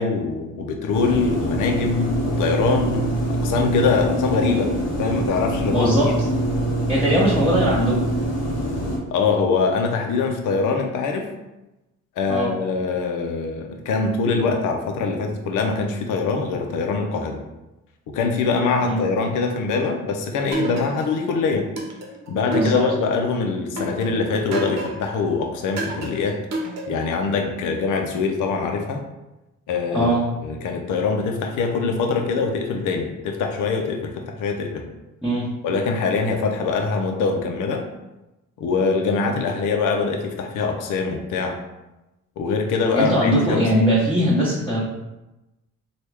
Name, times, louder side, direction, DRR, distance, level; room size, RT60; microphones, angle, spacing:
voice 1, 0.0-4.7 5.0-6.3 9.1-11.3 12.2-17.4 18.1-21.7 22.3-26.4 26.9-29.0 29.7-30.1 30.4-34.9 35.6-37.9 38.6-41.6 42.4-43.7, left 4 dB, 75° left, 3 dB, 0.6 m, -23 dB
sound 1, 0.9-9.0, right 1 dB, 55° left, 1.1 m, -24 dB
voice 2, 5.7-6.1 6.9-8.0 12.3-12.5 18.8-19.0 22.5-22.9 29.9-30.3 35.2-35.5 42.9-44.8, equal, 5° left, -9 dB, 1.0 m, -20 dB
sound 2, 20.5-21.3 21.8-23.2 23.8-25.2 25.8-27.2, right 2 dB, 60° right, 0.8 m, -29 dB
3.0 x 2.3 x 3.3 m, 0.99 s
cardioid pair, 75°, 31 cm